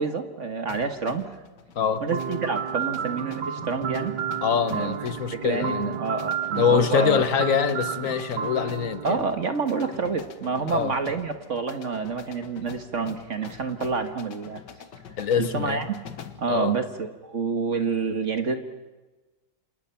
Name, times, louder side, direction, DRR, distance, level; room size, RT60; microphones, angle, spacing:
voice 1, 0.0-1.4 2.0-4.1 4.7-4.9 5.3-7.2 9.0-14.6 15.4-15.9 16.4-18.6, right 5 dB, 45° right, 7 dB, 1.6 m, -28 dB
sound 1, 0.7-16.5, left 7 dB, 70° left, 1.9 m, -45 dB
sound 2, 2.1-10.0, right 8 dB, 70° right, 1.5 m, -32 dB
voice 2, 4.4-6.0 6.5-9.2 10.7-11.0 15.2-15.8 16.5-16.8, left 7 dB, 50° left, 11 dB, 1.3 m, -24 dB
28.5 x 26.5 x 5.8 m, 1.2 s
omnidirectional pair, 2.0 m